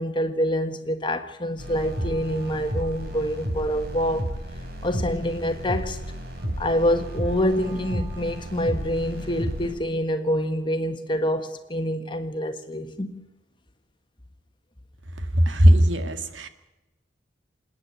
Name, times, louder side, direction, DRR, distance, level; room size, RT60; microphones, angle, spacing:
voice 1, 0.0-4.4 4.8-6.0 6.6-13.2, equal, 25° left, 1.5 m, -26 dB
sound 1, 1.6-9.7, equal, 55° right, 4.4 m, -32 dB
voice 2, 15.3-16.5, equal, 85° right, 2.0 m, -18 dB
27.5 x 9.9 x 10.0 m
head